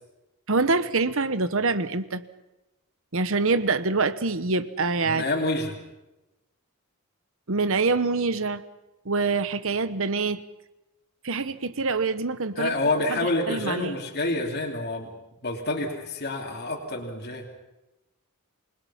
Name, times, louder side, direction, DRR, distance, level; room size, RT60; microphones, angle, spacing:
voice 1, 0.5-2.2 3.1-5.2 7.5-8.6 9.0-10.4 11.2-12.7 13.1-13.2 13.5-13.9, right 3 dB, 65° right, 13 dB, 1.1 m, -25 dB
voice 2, 5.0-5.7 12.6-15.1 15.4-17.5, left 2 dB, 50° left, 0 dB, 3.1 m, -28 dB
28.0 x 20.5 x 5.7 m, 1.0 s
head